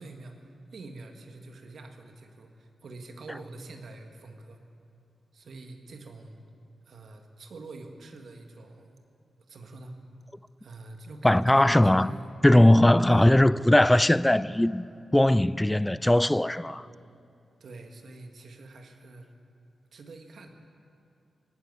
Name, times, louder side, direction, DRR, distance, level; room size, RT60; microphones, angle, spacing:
voice 1, 0.0-4.6 5.3-6.4 6.8-9.0 9.5-10.0 10.6-12.2 13.1-13.3 17.6-19.3 19.9-20.5, right 2 dB, 70° right, 1.7 m, -45 dB
voice 2, 11.2-12.1 12.4-14.9 15.1-16.9, left 1 dB, 10° left, 0.4 m, -20 dB
18.5 x 9.6 x 8.2 m
cardioid pair, 70°, 0 cm